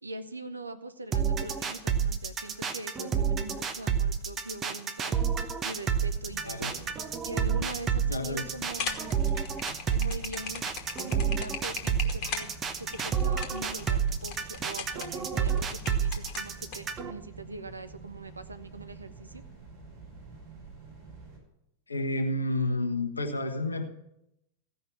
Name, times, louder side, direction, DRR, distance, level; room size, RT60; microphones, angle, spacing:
voice 1, 0.0-5.1 5.6-6.9 7.3-9.2 9.9-12.5 12.8-19.4, right 2 dB, 80° right, 10 dB, 0.8 m, -42 dB
sound 1, 1.1-17.1, right 7 dB, 25° right, 0.9 m, -29 dB
sound 2, 6.1-21.4, right 4 dB, 50° right, 5.3 m, -48 dB
voice 2, 8.1-8.4 21.9-23.9, left 2 dB, 80° left, 5 dB, 1.1 m, -30 dB
sound 3, 8.6-16.8, left 7 dB, 40° left, 1.5 m, -39 dB
15.5 x 5.5 x 7.4 m, 0.84 s
figure-of-eight pair, 90°, 0 cm